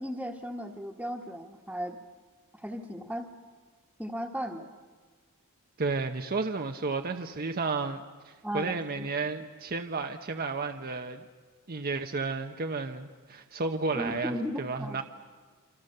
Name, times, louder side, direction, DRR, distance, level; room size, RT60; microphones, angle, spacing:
voice 1, 0.0-2.0 2.5-3.3 4.0-4.7 8.4-9.1 13.9-15.0, equal, 5° right, -4 dB, 1.5 m, -36 dB
voice 2, 5.8-11.2 11.7-15.0, right 4 dB, 45° right, 6 dB, 0.9 m, -32 dB
28.5 x 25.5 x 6.7 m, 1.5 s
head